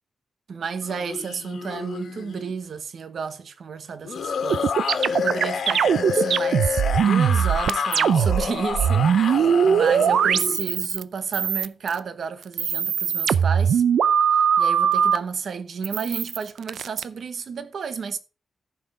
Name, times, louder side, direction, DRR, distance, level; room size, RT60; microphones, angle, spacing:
voice 1, 0.5-13.8 14.6-18.2, right 6 dB, 55° right, 1.0 m, -32 dB
sound 1, 0.8-2.5 4.0-10.6, left 6 dB, 70° left, 1.7 m, -29 dB
sound 2, 4.5-8.5 8.7-11.0 11.3-12.0 12.4-15.2 15.8-17.0, right 8 dB, 85° right, 0.5 m, -20 dB
14.0 x 5.8 x 4.8 m
wide cardioid pair, 165°, 0 cm